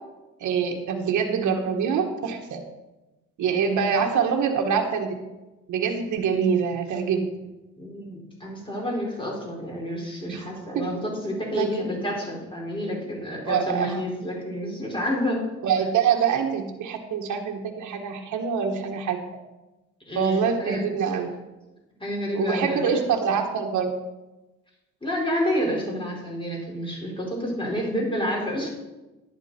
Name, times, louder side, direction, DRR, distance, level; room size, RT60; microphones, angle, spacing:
voice 1, 0.4-2.6 3.4-5.1 5.7-7.3 10.3-10.5 10.7-10.9 11.5-11.8 13.4-14.0 15.6-19.2 20.1-21.3 22.3-23.9, right 6 dB, 75° right, 3 dB, 1.5 m, -25 dB
voice 2, 7.8-15.4 20.1-20.9 22.0-23.0 25.0-28.7, equal, 15° left, -2 dB, 4.8 m, -29 dB
11.0 x 10.0 x 4.4 m, 1.1 s
cardioid pair, 90°, 30 cm